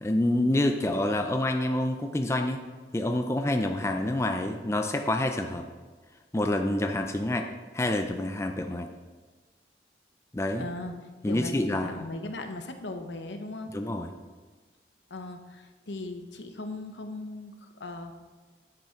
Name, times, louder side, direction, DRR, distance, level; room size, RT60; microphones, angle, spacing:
voice 1, 0.0-2.6 2.9-5.7 6.3-7.5 7.7-8.9 10.3-10.7 11.2-12.1 13.7-14.1, left 1 dB, 15° left, 5 dB, 0.4 m, -27 dB
voice 2, 10.6-11.0 11.3-13.8 15.1-18.2, left 2 dB, 80° left, 6 dB, 0.8 m, -38 dB
10.5 x 6.1 x 4.4 m, 1.3 s
head